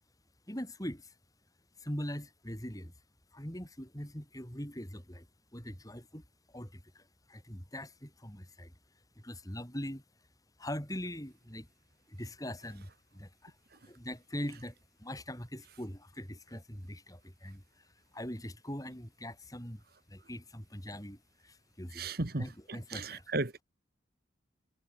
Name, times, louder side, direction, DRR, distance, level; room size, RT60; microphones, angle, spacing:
voice 1, 0.5-1.1 1.8-2.9 3.3-5.3 5.5-8.7 9.2-10.0 10.6-11.7 12.1-13.6 13.8-22.1 22.4-23.3, equal, 20° left, 7.3 m, -42 dB
voice 2, 22.0-22.4 22.9-23.6, right 2 dB, 50° right, 1.6 m, -34 dB
head